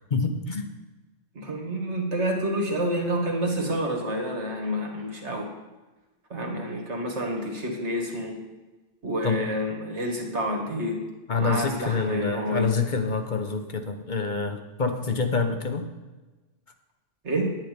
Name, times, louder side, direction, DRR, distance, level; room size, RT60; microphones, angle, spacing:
voice 1, 0.1-0.7 9.2-9.4 11.3-15.9, left 4 dB, 40° left, 6 dB, 1.0 m, -27 dB
voice 2, 1.4-5.5 6.3-8.4 9.0-11.0 11.4-12.7 17.2-17.5, equal, 65° right, 2 dB, 2.2 m, -28 dB
10.5 x 9.4 x 5.2 m, 1.2 s
omnidirectional pair, 1.3 m